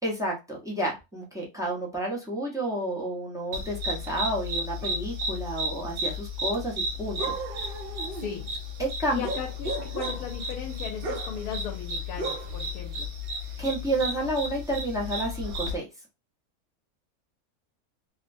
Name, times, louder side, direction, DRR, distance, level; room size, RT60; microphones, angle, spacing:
voice 1, 0.0-7.3 8.8-9.2 13.6-15.9, right 1 dB, 5° right, 0.3 m, -30 dB
sound 1, 3.5-15.8, left 1 dB, 80° right, 0.5 m, -33 dB
voice 2, 8.1-8.5 9.1-13.1, left 7 dB, 75° left, 1.1 m, -37 dB
2.8 x 2.1 x 2.5 m
omnidirectional pair, 1.7 m